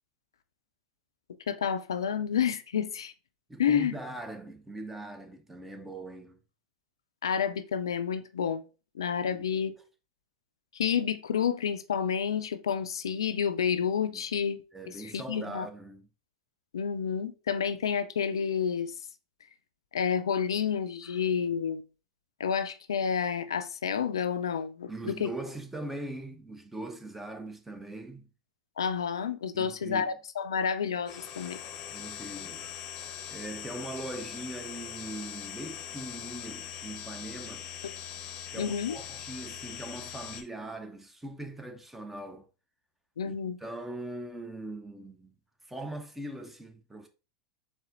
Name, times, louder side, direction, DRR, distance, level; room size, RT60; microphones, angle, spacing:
voice 1, 1.5-3.1 3.6-3.9 7.2-8.6 8.9-9.7 10.7-14.6 15.0-15.7 16.7-18.9 19.9-21.8 22.4-25.3 28.8-31.6 38.6-39.0 43.2-43.6, left 7 dB, 75° left, 0.3 m, -29 dB
voice 2, 3.5-6.4 9.2-9.6 14.1-14.2 14.7-16.1 21.0-21.1 24.9-28.3 29.5-30.1 31.9-32.8 33.3-37.7 38.5-42.5 43.2-45.4 45.7-47.1, right 2 dB, 10° right, 0.7 m, -41 dB
sound 1, 31.1-40.4, left 9 dB, 40° left, 0.7 m, -41 dB
4.2 x 3.5 x 2.5 m
hypercardioid pair, 90°, 2 cm